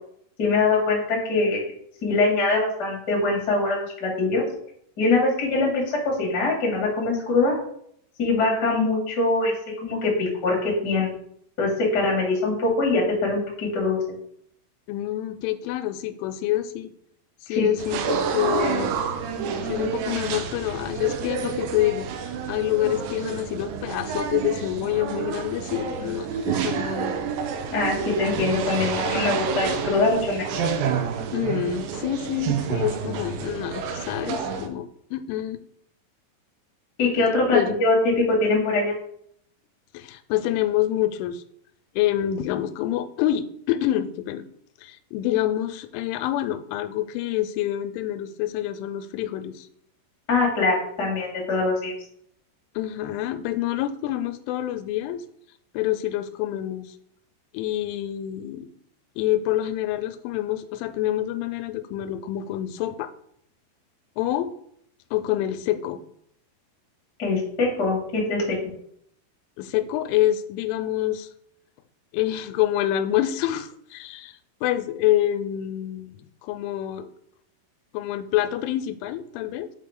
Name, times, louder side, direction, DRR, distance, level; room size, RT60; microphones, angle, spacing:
voice 1, 0.4-1.6 2.0-4.4 5.0-7.5 8.2-9.5 9.8-11.1 11.6-14.0 17.5-17.7 27.7-30.5 37.0-38.9 50.3-51.9 67.2-68.5, left 3 dB, 35° left, -2 dB, 1.7 m, -23 dB
voice 2, 14.9-16.9 17.5-18.9 19.7-22.1 22.5-27.1 31.3-35.6 37.5-37.7 39.9-41.4 42.0-44.4 44.8-49.7 52.8-55.2 55.7-56.9 57.5-58.7 59.2-63.1 64.2-64.5 65.1-66.0 69.6-71.3 72.1-77.1 77.9-79.7, left 13 dB, 90° left, 10 dB, 3.0 m, -27 dB
sound 1, 17.8-34.7, right 6 dB, 80° right, 2.8 m, -29 dB
6.3 x 5.5 x 3.7 m, 0.69 s
omnidirectional pair, 5.4 m